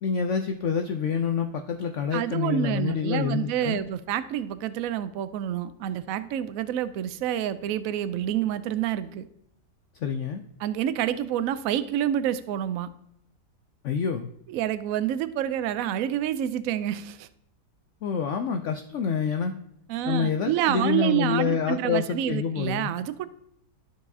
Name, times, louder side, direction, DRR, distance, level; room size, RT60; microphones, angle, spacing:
voice 1, 0.0-3.8 10.0-10.4 13.8-14.3 18.0-19.6 20.1-22.9, left 6 dB, 75° left, 5 dB, 0.7 m, -27 dB
voice 2, 2.1-9.2 10.6-12.9 14.5-17.3 19.9-23.3, right 11 dB, 70° right, 13 dB, 0.9 m, -28 dB
12.5 x 4.8 x 2.7 m, 0.74 s
omnidirectional pair, 1.8 m